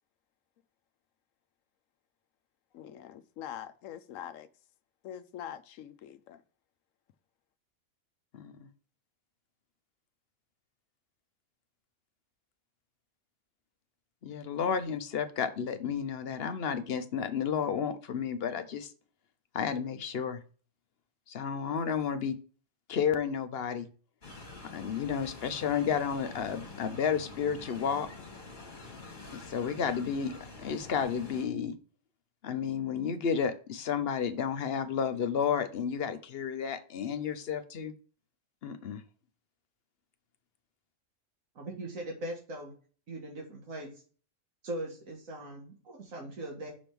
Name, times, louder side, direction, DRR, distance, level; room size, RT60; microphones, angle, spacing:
voice 1, 2.7-4.5 5.0-6.4, left 10 dB, 80° left, 1.0 m, -44 dB
voice 2, 8.3-8.7 14.2-18.9 19.5-20.4 21.3-22.4 22.9-23.9 24.7-28.1 29.3-30.3 30.6-31.8 32.4-37.9 38.6-39.0, left 7 dB, 55° left, 0.8 m, -32 dB
sound 1, 24.2-31.4, left 3 dB, 40° left, 1.6 m, -47 dB
voice 3, 41.6-42.7 43.1-43.9 44.6-46.7, right 1 dB, 85° right, 1.9 m, -40 dB
6.1 x 3.4 x 5.9 m
omnidirectional pair, 1.4 m